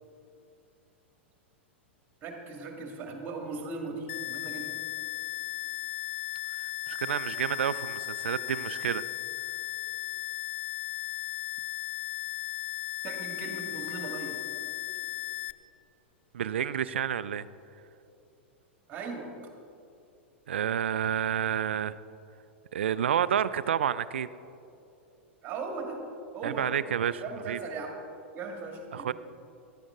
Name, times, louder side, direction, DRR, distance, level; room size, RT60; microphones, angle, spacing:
voice 1, 2.2-4.8 13.0-14.4 18.9-19.3 25.4-26.0 26.3-26.7 27.2-27.9 28.3-29.1, right 4 dB, 30° right, 2 dB, 2.0 m, -38 dB
sound 1, 4.1-15.5, left 17 dB, 50° left, 0.4 m, -36 dB
voice 2, 6.9-9.0 16.3-17.5 20.5-22.0 22.7-24.3 26.4-27.6 28.9-29.1, right 9 dB, 65° right, 16 dB, 0.4 m, -29 dB
14.0 x 11.5 x 3.7 m, 2.7 s
figure-of-eight pair, 100°, 7 cm